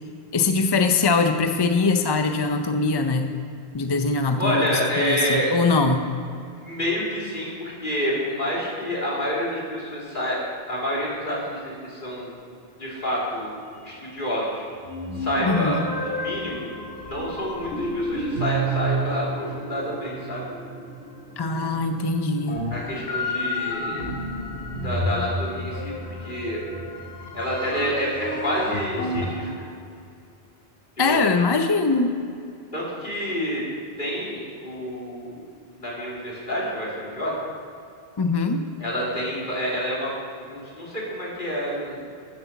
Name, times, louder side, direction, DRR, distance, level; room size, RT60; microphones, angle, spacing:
voice 1, 0.3-3.3 3.7-6.0 15.4-15.9 21.4-22.6 31.0-32.2 38.2-38.6, left 3 dB, 30° left, 6 dB, 0.5 m, -22 dB
voice 2, 4.4-5.5 6.6-10.4 10.7-12.3 12.8-13.6 13.8-14.6 15.1-16.7 17.0-20.4 22.7-24.1 24.8-26.6 27.3-29.5 31.1-31.2 32.7-33.6 34.0-35.4 35.8-37.3 38.8-40.1 40.5-42.0, equal, 50° left, -6 dB, 3.5 m, -28 dB
sound 1, 13.9-14.0 14.8-29.5, equal, 80° left, 2.2 m, -31 dB
11.5 x 7.9 x 7.1 m, 2.5 s
omnidirectional pair, 1.1 m